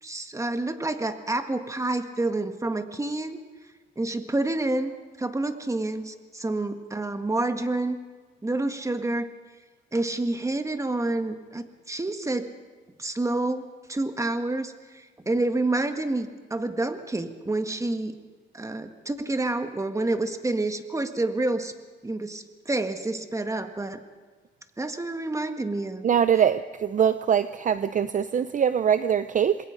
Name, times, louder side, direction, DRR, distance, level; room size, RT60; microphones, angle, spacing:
voice 1, 0.0-3.4 4.0-4.9 5.2-8.0 8.4-9.3 9.9-12.5 13.0-18.2 18.5-21.7 22.0-24.0 24.8-26.1, right 2 dB, 15° right, 7 dB, 1.8 m, -28 dB
voice 2, 26.0-29.6, right 8 dB, 40° right, 13 dB, 0.6 m, -23 dB
27.0 x 21.0 x 5.2 m, 1.4 s
cardioid pair, 90°, 20 cm